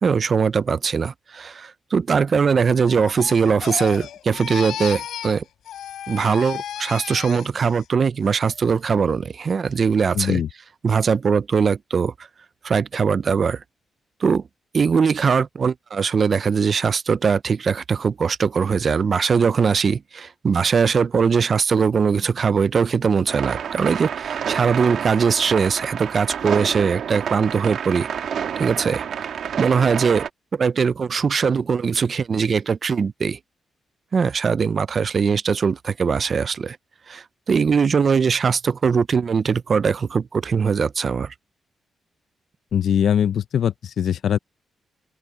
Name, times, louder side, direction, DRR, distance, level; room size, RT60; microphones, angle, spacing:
voice 1, 0.0-5.4 6.1-10.4 10.8-12.1 12.6-13.6 14.2-14.4 14.7-28.1 28.6-29.0 29.6-30.3 30.5-33.4 34.1-36.8 37.1-41.3, right 6 dB, 40° right, 0.4 m, -21 dB
Crying sobbing, 2.9-5.4 5.6-7.8 8.2-8.6, left 10 dB, 85° left, 6.5 m, -34 dB
voice 2, 10.1-10.5 42.7-44.4, left 9 dB, 60° left, 0.6 m, -21 dB
sound 1, 23.3-30.3, right 8 dB, 65° right, 1.8 m, -29 dB
open air
wide cardioid pair, 150°, 0 cm